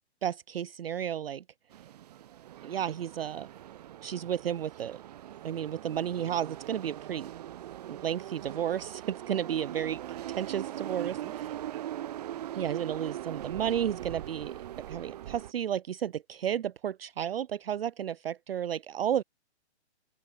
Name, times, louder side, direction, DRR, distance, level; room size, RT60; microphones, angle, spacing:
voice 1, 0.2-1.4 2.6-3.5 4.0-5.0 5.4-7.3 7.9-10.0 10.4-11.2 12.5-14.5 14.9-19.2, right 9 dB, 60° right, 0.5 m, -32 dB
sound 1, 1.7-15.5, right 12 dB, 35° right, 0.9 m, -41 dB
voice 2, 11.0-12.6, right 21 dB, 20° right, 1.9 m, -53 dB
open air
figure-of-eight pair, 130°, 34 cm